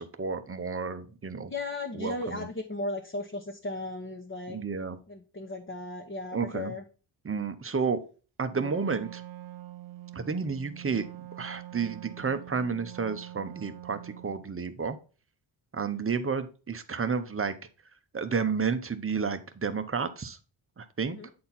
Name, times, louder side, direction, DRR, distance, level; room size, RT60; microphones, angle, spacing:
voice 1, 0.0-1.5 1.9-2.5 4.5-5.0 6.3-6.7 7.2-8.0 8.4-9.2 10.1-11.1 11.4-15.0 15.7-17.6 18.1-20.4 20.8-21.3, right 5 dB, 25° right, 10 dB, 0.8 m, -31 dB
voice 2, 1.5-4.6 5.1-6.8 21.1-21.3, left 2 dB, 25° left, 1 dB, 1.0 m, -36 dB
Wind instrument woodwind instrument, 8.5-14.4, right 14 dB, 90° right, 0.7 m, -45 dB
8.5 x 4.3 x 4.0 m, 0.35 s
wide cardioid pair, 120°, 48 cm